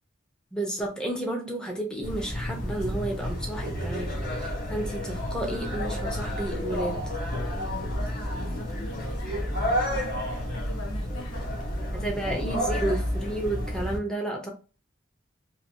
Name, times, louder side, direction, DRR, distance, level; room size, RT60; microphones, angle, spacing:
voice 1, 0.5-7.0 11.9-14.5, right 1 dB, 5° left, 0.7 m, -32 dB
sound 1, 2.0-14.0, equal, 45° left, 1.1 m, -30 dB
voice 2, 7.4-12.1 12.7-13.0, left 2 dB, 85° left, 0.8 m, -43 dB
2.9 x 2.7 x 2.7 m
head